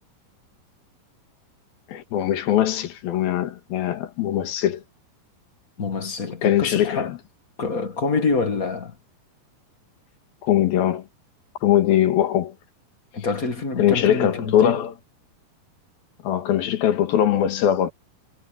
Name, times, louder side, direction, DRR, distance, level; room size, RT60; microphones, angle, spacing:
voice 1, 1.9-4.8 6.4-7.2 10.4-11.1 11.6-12.6 13.8-14.9 16.2-17.9, left 11 dB, 85° left, 3.5 m, -21 dB
voice 2, 5.8-7.1 7.6-8.9 13.1-14.7, left 4 dB, 40° left, 1.2 m, -26 dB
omnidirectional pair, 4.1 m